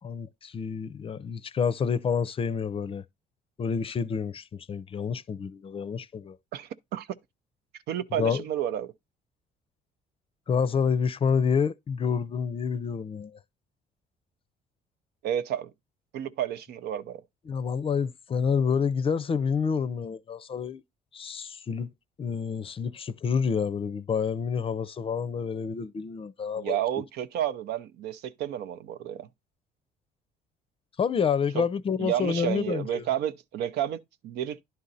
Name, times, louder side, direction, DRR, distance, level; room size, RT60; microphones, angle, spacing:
voice 1, 0.0-3.0 3.6-6.4 8.1-8.4 10.5-13.4 17.5-20.8 21.1-21.9 22.2-26.8 31.0-33.0, left 6 dB, 35° left, 0.5 m, -28 dB
voice 2, 6.5-7.1 7.9-8.9 15.2-15.7 16.1-17.2 26.6-29.3 31.5-31.6 32.0-34.6, right 10 dB, 75° right, 0.7 m, -31 dB
11.0 x 3.9 x 4.1 m
cardioid pair, 110°, 17 cm